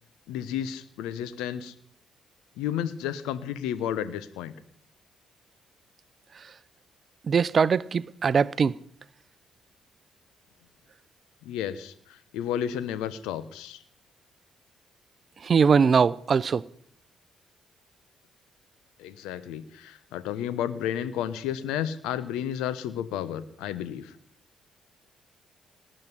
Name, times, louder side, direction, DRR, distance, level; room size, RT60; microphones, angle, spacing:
voice 1, 0.3-1.7 2.6-4.5 11.4-11.9 12.3-13.8 19.0-24.1, left 10 dB, 80° left, 1.1 m, -32 dB
voice 2, 7.2-8.8 15.4-16.7, right 6 dB, 50° right, 0.6 m, -22 dB
18.5 x 7.6 x 9.9 m
hypercardioid pair, 50°, 0 cm